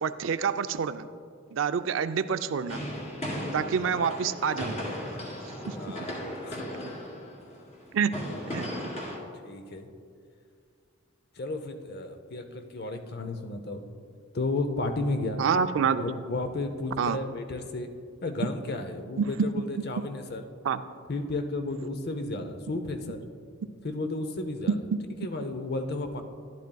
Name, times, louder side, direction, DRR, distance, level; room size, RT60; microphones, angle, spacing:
voice 1, 0.0-1.1 1.5-2.8 3.5-4.8 5.7-5.8 7.9-8.1 8.5-8.9 15.4-16.0 17.0-17.2 19.2-19.5 20.6-20.8 24.7-25.0, right 6 dB, 70° right, 11 dB, 0.4 m, -27 dB
sound 1, 2.7-9.2, equal, 35° left, 2.0 m, -36 dB
voice 2, 5.7-6.9 9.4-9.9 11.4-13.8 14.3-15.4 16.0-17.9 18.2-20.4 21.1-23.2 23.8-24.8 25.2-26.2, left 2 dB, 55° left, 7 dB, 0.7 m, -33 dB
12.0 x 11.5 x 2.3 m, 2.2 s
head